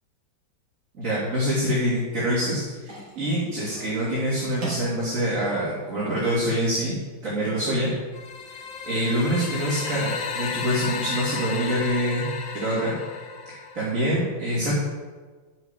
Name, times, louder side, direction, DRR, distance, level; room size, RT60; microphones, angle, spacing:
voice 1, 1.0-6.9 7.2-7.9 8.5-8.6 8.9-12.3 12.5-12.9 13.5-14.7, equal, 45° right, -8 dB, 3.4 m, -25 dB
sound 1, 2.8-10.8, right 2 dB, 85° right, 3.7 m, -43 dB
sound 2, 8.1-14.1, left 5 dB, 85° left, 1.7 m, -33 dB
10.0 x 7.9 x 7.4 m, 1.4 s
omnidirectional pair, 2.0 m